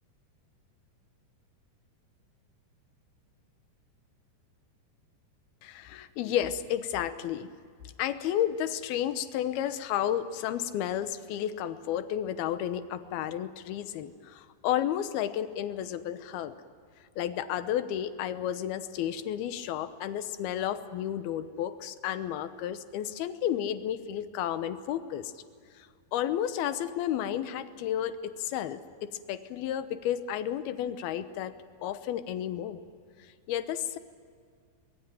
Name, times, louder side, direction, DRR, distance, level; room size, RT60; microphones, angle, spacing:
voice 1, 5.6-7.5 8.0-16.5 17.2-25.3 25.8-31.5 31.8-32.8 33.2-34.0, left 10 dB, 70° left, 11 dB, 2.6 m, -32 dB
24.0 x 21.5 x 9.1 m, 2.2 s
omnidirectional pair, 5.2 m